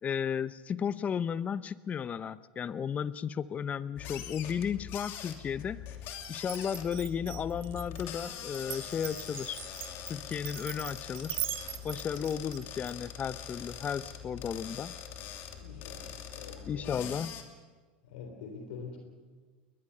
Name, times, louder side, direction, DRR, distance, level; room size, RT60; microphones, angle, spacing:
voice 1, 0.0-5.9 6.3-9.6 10.1-11.4 11.8-14.9 16.7-17.3, left 7 dB, 30° left, 17 dB, 0.7 m, -34 dB
sound 1, 4.0-17.4, left 9 dB, 55° left, 2.8 m, -43 dB
Glass, 6.4-12.9, right 13 dB, 50° right, 1.0 m, -41 dB
voice 2, 15.5-17.2 18.0-19.0, left 4 dB, 80° left, 3 dB, 3.7 m, -46 dB
21.5 x 20.5 x 6.8 m, 1.4 s
supercardioid pair, 105°, 5 cm